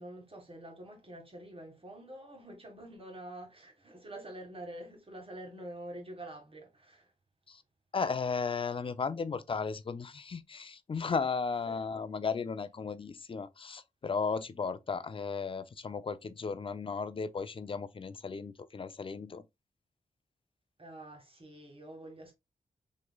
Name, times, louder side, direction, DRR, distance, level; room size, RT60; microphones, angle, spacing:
voice 1, 0.0-7.1 11.7-11.8 20.8-22.3, right 1 dB, 40° right, 1.6 m, -47 dB
voice 2, 7.9-19.4, left 5 dB, 40° left, 0.4 m, -35 dB
3.8 x 2.9 x 2.2 m
cardioid pair, 60°, 15 cm